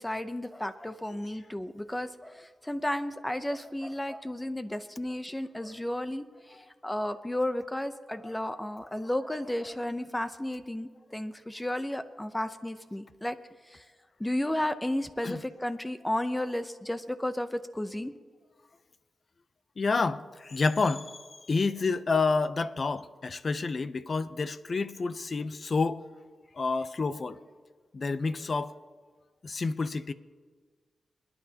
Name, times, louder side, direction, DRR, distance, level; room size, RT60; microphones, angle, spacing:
voice 1, 0.0-6.6 6.8-13.4 13.7-13.8 14.2-18.1, left 1 dB, 10° left, 0.6 m, -33 dB
voice 2, 19.8-21.1 21.5-26.0 26.5-27.4 27.9-28.7 29.4-30.1, left 4 dB, 50° left, 0.6 m, -29 dB
28.0 x 9.7 x 2.8 m
cardioid pair, 70°, 0 cm